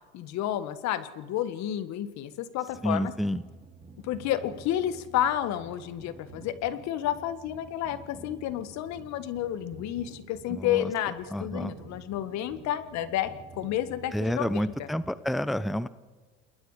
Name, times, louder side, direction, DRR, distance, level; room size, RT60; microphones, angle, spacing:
voice 1, 0.1-3.1 4.0-14.9, left 11 dB, 60° left, 12 dB, 1.7 m, -31 dB
sound 1, 2.7-15.1, right 4 dB, 20° right, 4.0 m, -50 dB
voice 2, 2.8-3.4 10.5-10.9 11.3-11.7 14.1-15.9, equal, ahead, 15 dB, 0.7 m, -29 dB
29.0 x 20.5 x 5.0 m, 1.4 s
supercardioid pair, 90°, 31 cm